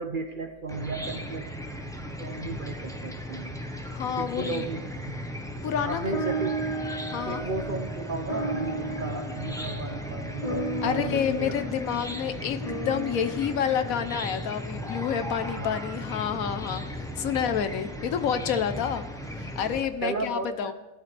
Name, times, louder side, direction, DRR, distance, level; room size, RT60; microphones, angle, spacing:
voice 1, 0.0-1.5 2.2-3.6 4.2-5.2 5.6-6.5 7.3-11.6 15.6-15.8 17.2-17.3 20.0-20.7, right 3 dB, 50° right, 6 dB, 0.7 m, -34 dB
Chicken rooster / Cricket, 0.7-19.8, equal, 5° left, 0.8 m, -36 dB
voice 2, 3.9-4.7 5.6-6.1 7.1-7.4 10.8-19.1 19.4-20.7, left 8 dB, 70° left, 11 dB, 1.1 m, -29 dB
sound 1, 6.1-14.8, right 1 dB, 30° left, 0.9 m, -35 dB
17.5 x 11.5 x 3.3 m, 1.0 s
omnidirectional pair, 1.5 m